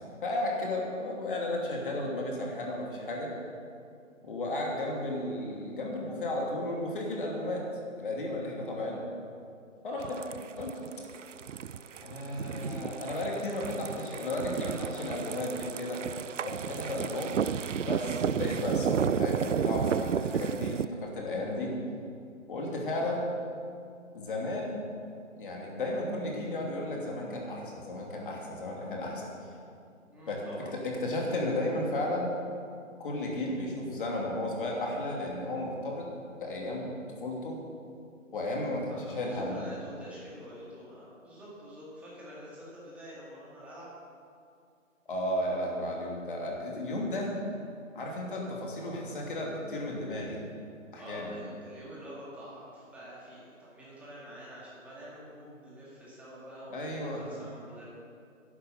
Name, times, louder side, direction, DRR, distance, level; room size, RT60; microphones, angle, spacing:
voice 1, 0.2-3.3 4.2-7.6 8.0-9.1 9.8-10.2 10.6-10.8 12.0-16.0 16.4-17.4 17.8-21.7 22.5-23.3 24.1-24.8 25.4-29.3 30.3-30.4 30.8-32.3 33.0-36.1 36.3-36.9 37.2-37.6 38.3-39.6 45.1-47.3 47.9-50.4 50.9-51.3 56.7-57.2, left 1 dB, 40° left, -1 dB, 2.8 m, -34 dB
voice 2, 9.8-10.2 12.4-14.3 14.6-15.0 30.1-30.7 38.9-43.9 51.0-57.9, equal, 5° right, -7 dB, 1.9 m, -47 dB
sound 1, 10.0-20.8, right 7 dB, 65° right, 0.5 m, -32 dB
11.0 x 9.8 x 7.4 m, 2.4 s
figure-of-eight pair, 150°, 39 cm